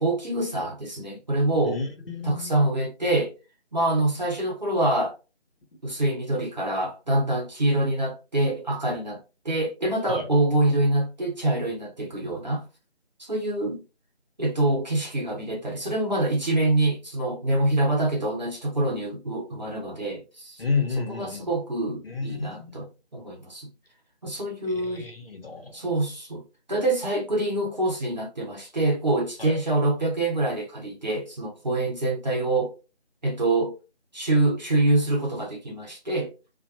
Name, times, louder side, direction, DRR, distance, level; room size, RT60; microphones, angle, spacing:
voice 1, 0.0-1.8 2.2-3.3 3.7-5.1 5.8-12.7 13.2-13.8 14.4-20.6 21.2-22.9 23.1-23.7 24.2-25.1 25.7-32.7 33.2-33.7 34.1-36.3, right 2 dB, 40° right, 1.1 m, -25 dB
voice 2, 1.6-2.5 10.1-10.3 20.6-21.5 22.0-22.8 24.6-25.8 29.4-29.6, left 4 dB, 55° left, 1.1 m, -31 dB
4.2 x 2.5 x 2.9 m
figure-of-eight pair, 170°, 34 cm